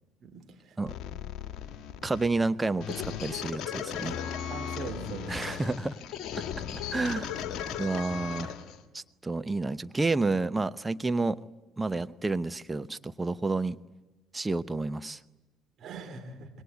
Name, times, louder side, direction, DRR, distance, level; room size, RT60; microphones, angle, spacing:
voice 1, 0.2-0.8 1.1-1.2 4.5-5.4 15.8-16.5, right 4 dB, 45° right, 6 dB, 3.3 m, -41 dB
sound 1, 0.9-8.8, left 8 dB, 50° left, 2.0 m, -37 dB
voice 2, 2.0-4.2 5.3-5.9 6.9-7.4 7.8-8.5 8.9-11.4 11.8-13.8 14.3-15.2, right 3 dB, 15° right, 13 dB, 0.9 m, -30 dB
26.5 x 21.5 x 9.6 m, 1.1 s
figure-of-eight pair, 55°, 0 cm